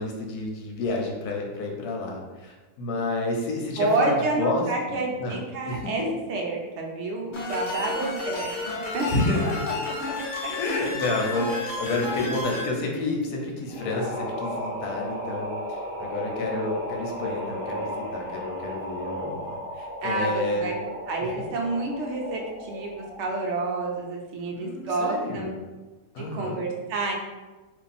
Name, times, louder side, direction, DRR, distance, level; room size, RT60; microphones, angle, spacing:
voice 1, 0.0-4.6 4.9-5.4 5.7-6.1 7.8-7.9 9.1-10.1 10.6-20.7 24.5-25.5 26.1-26.6, left 2 dB, 80° left, 0 dB, 1.2 m, -30 dB
voice 2, 3.8-6.0 6.3-8.5 8.9-9.0 10.4-10.6 20.0-20.7 21.1-25.5 26.3-27.1, right 2 dB, 60° right, 0 dB, 0.9 m, -29 dB
sound 1, 7.3-12.7, left 2 dB, 55° left, 0.5 m, -31 dB
sound 2, 13.7-23.4, equal, 20° left, 1.2 m, -35 dB
2.8 x 2.6 x 4.0 m, 1.2 s
omnidirectional pair, 1.6 m